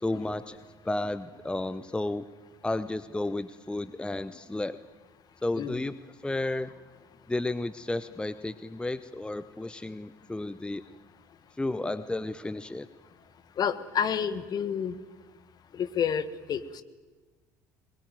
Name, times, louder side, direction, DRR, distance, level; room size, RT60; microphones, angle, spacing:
voice 1, 0.0-2.2 2.6-4.8 5.4-5.9 6.2-6.7 7.3-10.8 11.6-12.9, left 2 dB, 10° left, 13 dB, 0.9 m, -32 dB
voice 2, 13.6-14.9 15.7-16.8, left 8 dB, 45° left, 12 dB, 1.6 m, -29 dB
22.5 x 21.0 x 9.3 m, 1.3 s
figure-of-eight pair, 55°, 10 cm